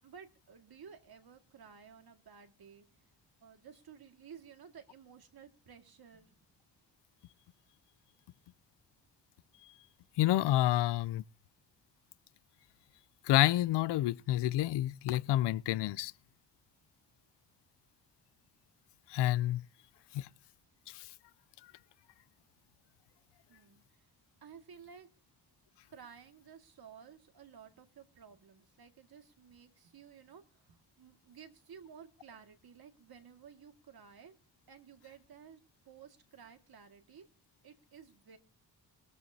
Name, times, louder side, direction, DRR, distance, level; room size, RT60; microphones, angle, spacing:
voice 1, 0.0-2.9 3.4-6.3 20.1-20.3 23.5-24.0 24.4-25.1 25.9-34.3 34.7-35.6 35.8-37.3 37.6-38.4, right 7 dB, 55° right, 2.0 m, -55 dB
voice 2, 10.2-11.2 13.3-16.1 19.1-19.6 20.1-20.3 20.9-21.0, left 14 dB, 70° left, 0.5 m, -28 dB
19.5 x 13.5 x 2.8 m
cardioid pair, 75°, 43 cm